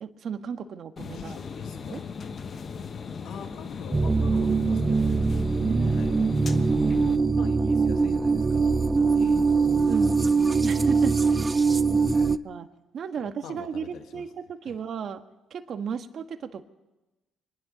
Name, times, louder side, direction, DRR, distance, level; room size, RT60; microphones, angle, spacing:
voice 1, 0.0-1.4 1.9-2.0 5.7-6.1 9.8-11.7 12.0-12.1 12.4-12.7 12.9-15.2 15.5-16.6, right 7 dB, 55° right, 7 dB, 1.5 m, -34 dB
sound 1, 1.0-7.2, left 5 dB, 45° left, 1.1 m, -37 dB
voice 2, 1.1-2.1 3.2-5.2 5.5-6.2 7.1-9.4 11.9-12.3 13.2-14.2 14.6-14.8, left 7 dB, 75° left, 6 dB, 1.2 m, -45 dB
sound 2, 3.9-12.4, right 4 dB, 25° right, 0.5 m, -22 dB
25.0 x 11.0 x 5.2 m, 1.1 s
cardioid pair, 90°, 0 cm